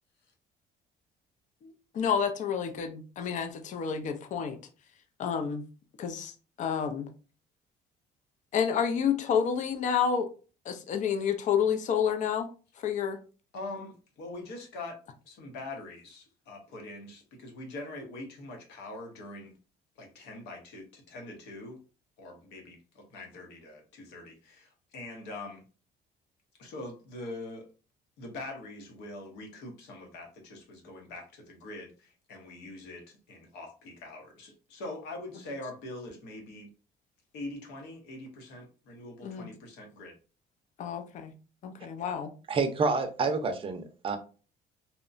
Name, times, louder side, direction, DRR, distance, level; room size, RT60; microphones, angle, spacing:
voice 1, 1.6-4.6 5.2-5.6 6.0-7.1 8.5-10.3 10.6-12.5 12.8-13.2 39.2-39.5 40.8-41.3 41.6-42.3, left 7 dB, 45° left, 7 dB, 0.5 m, -29 dB
voice 2, 13.5-15.0 15.3-19.6 20.0-21.8 22.2-25.6 26.6-27.7 28.2-36.7 37.3-40.1, left 2 dB, 90° left, 2 dB, 0.9 m, -43 dB
voice 3, 42.5-44.2, right 4 dB, 30° right, 7 dB, 0.5 m, -28 dB
2.8 x 2.1 x 2.4 m, 0.35 s
cardioid pair, 110°, 17 cm